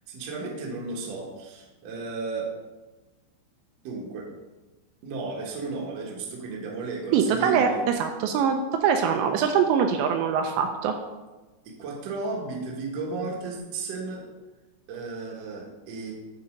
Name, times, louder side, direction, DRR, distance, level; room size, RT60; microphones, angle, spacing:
voice 1, 0.1-2.5 3.8-4.3 5.0-7.8 11.6-14.3 14.9-16.1, right 3 dB, 65° right, -2 dB, 1.7 m, -34 dB
voice 2, 7.1-11.0, right 7 dB, 80° right, 5 dB, 2.7 m, -23 dB
9.5 x 4.2 x 5.1 m, 1.2 s
omnidirectional pair, 5.3 m